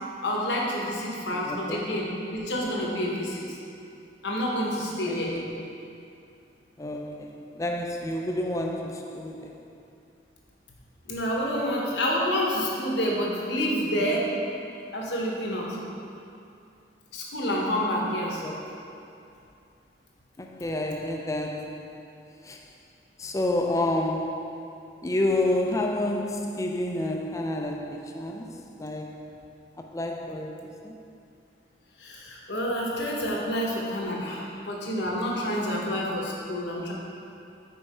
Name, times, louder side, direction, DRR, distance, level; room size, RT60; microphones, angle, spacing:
voice 1, 0.2-3.6 4.2-5.3 11.1-14.3 14.9-15.8 17.1-18.4 32.0-36.9, equal, 70° left, 1.0 m, -28 dB
voice 2, 1.4-2.1 5.0-5.9 6.8-9.7 18.4-19.0 20.4-22.7 23.2-29.5 29.8-31.0, left 1 dB, 15° left, 0.3 m, -30 dB
5.4 x 4.7 x 4.2 m
head